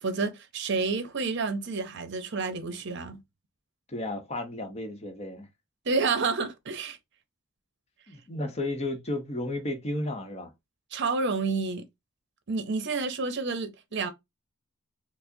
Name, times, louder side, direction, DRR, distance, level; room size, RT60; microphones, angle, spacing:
voice 1, 0.0-3.2 5.8-7.0 10.9-11.8 12.5-14.1, right 4 dB, 60° right, 0.7 m, -29 dB
voice 2, 3.9-5.5 8.1-10.5, left 1 dB, 30° left, 0.8 m, -33 dB
4.7 x 2.0 x 2.6 m
head